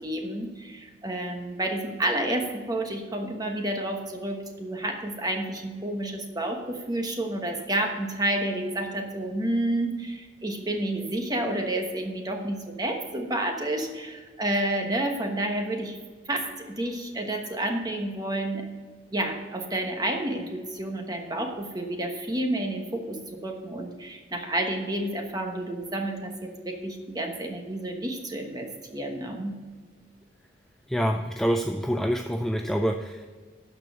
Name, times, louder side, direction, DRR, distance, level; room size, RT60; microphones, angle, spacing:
voice 1, 0.0-16.0 16.3-18.6 19.1-26.3 26.6-29.6, right 1 dB, 20° right, 3 dB, 1.2 m, -30 dB
voice 2, 30.9-33.3, equal, ahead, 4 dB, 0.3 m, -26 dB
12.5 x 4.6 x 6.7 m, 1.5 s
head